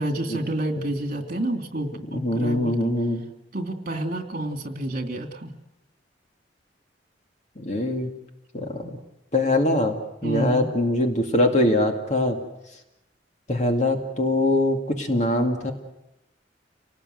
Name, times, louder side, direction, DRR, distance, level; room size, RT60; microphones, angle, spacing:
voice 1, 0.0-2.9 3.5-5.5 10.2-10.7, right 1 dB, 50° right, 5 dB, 2.9 m, -29 dB
voice 2, 2.1-3.2 7.6-8.1 8.5-9.0 9.3-12.4 13.5-15.7, left 1 dB, 40° left, 3 dB, 2.4 m, -23 dB
29.5 x 19.0 x 7.9 m, 0.94 s
head